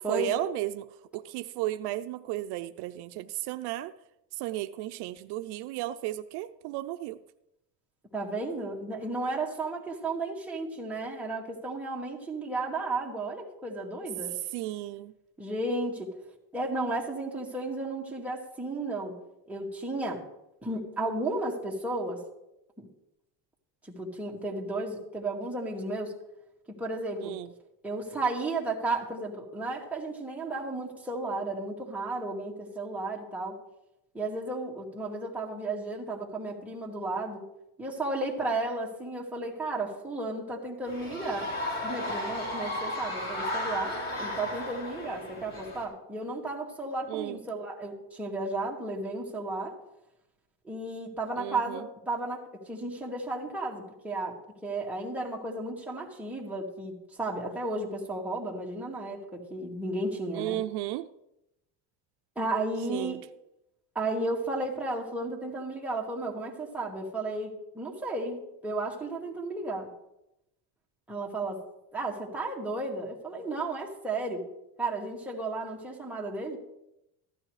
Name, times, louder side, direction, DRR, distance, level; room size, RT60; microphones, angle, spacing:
voice 1, 0.1-0.9 1.1-3.9 4.4-7.2 14.5-15.1 27.2-27.5 47.1-47.4 51.4-51.9 60.3-61.1 62.9-63.2, right 15 dB, 70° right, 10 dB, 0.6 m, -34 dB
voice 2, 8.1-14.4 15.4-16.1 16.5-19.2 19.5-20.3 20.6-22.2 22.8-22.9 23.9-26.1 26.8-27.3 27.8-33.6 34.1-37.4 37.8-41.5 41.8-49.7 50.6-54.4 54.6-60.6 62.4-63.2 64.0-69.9 71.1-71.6 71.9-74.5 74.8-76.6, right 2 dB, 5° right, -4 dB, 2.0 m, -33 dB
sound 1, 40.9-45.8, left 1 dB, 30° left, 3.8 m, -34 dB
15.0 x 12.5 x 3.2 m, 0.87 s
cardioid pair, 150°, 41 cm